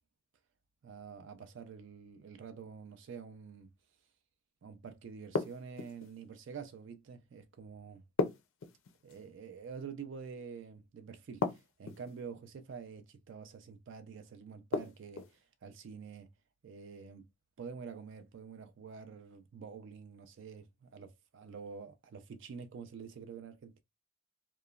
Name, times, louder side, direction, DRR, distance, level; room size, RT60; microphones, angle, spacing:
voice 1, 0.8-3.7 4.6-8.0 9.0-16.3 16.6-17.3 17.6-23.8, right 6 dB, 55° right, 0.3 m, -47 dB
sound 1, 5.3-6.1 8.2-9.2 11.4-12.2 14.7-15.4, left 4 dB, 60° left, 0.4 m, -35 dB
2.9 x 2.1 x 2.3 m
head